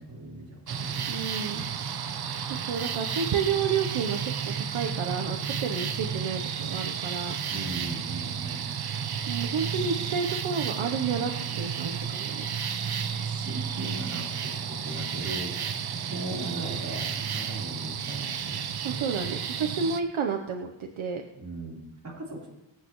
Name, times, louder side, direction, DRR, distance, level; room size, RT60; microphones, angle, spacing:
voice 1, 0.0-1.1 1.4-1.7 7.5-8.6 13.1-18.6 18.9-19.2 21.3-22.5, right 2 dB, 35° right, -4 dB, 4.0 m, -39 dB
sound 1, 0.7-20.0, right 7 dB, 50° right, 0.7 m, -32 dB
voice 2, 1.1-1.6 2.7-4.3 4.6-7.3 9.3-12.4 18.8-21.2, right 6 dB, 80° right, 3 dB, 1.0 m, -30 dB
23.5 x 8.5 x 3.1 m, 0.95 s
wide cardioid pair, 145°, 48 cm